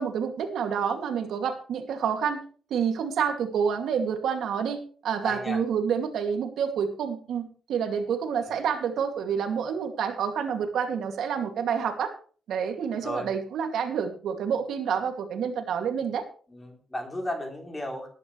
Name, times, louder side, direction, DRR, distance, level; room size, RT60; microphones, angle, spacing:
voice 1, 0.0-2.4 2.7-12.1 12.5-16.2, right 7 dB, 70° right, 5 dB, 2.5 m, -28 dB
voice 2, 5.2-5.6 8.4-8.5 13.0-13.3 16.5-18.1, left 1 dB, 10° left, 2 dB, 3.5 m, -34 dB
19.5 x 11.0 x 3.3 m, 0.41 s
wide cardioid pair, 175°, 0 cm